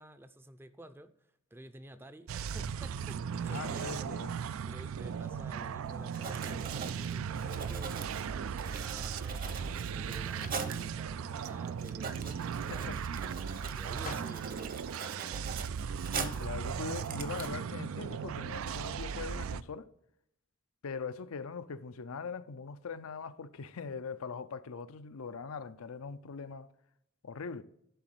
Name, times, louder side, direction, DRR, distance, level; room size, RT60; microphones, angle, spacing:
voice 1, 0.0-4.3 4.7-13.0 13.4-15.7, right 1 dB, 10° right, 0.5 m, -52 dB
sound 1, 2.3-19.6, right 7 dB, 70° right, 0.4 m, -37 dB
voice 2, 3.5-4.3 6.5-6.7 12.7-13.0 16.2-19.9 20.8-26.7 27.2-27.6, left 5 dB, 85° left, 0.6 m, -41 dB
Writing, 6.1-10.9 11.4-11.5 11.8-16.5 16.9-17.5, right 5 dB, 45° right, 1.0 m, -42 dB
Drawer open or close, 6.9-16.5, left 4 dB, 40° left, 0.5 m, -53 dB
11.5 x 4.0 x 7.7 m
head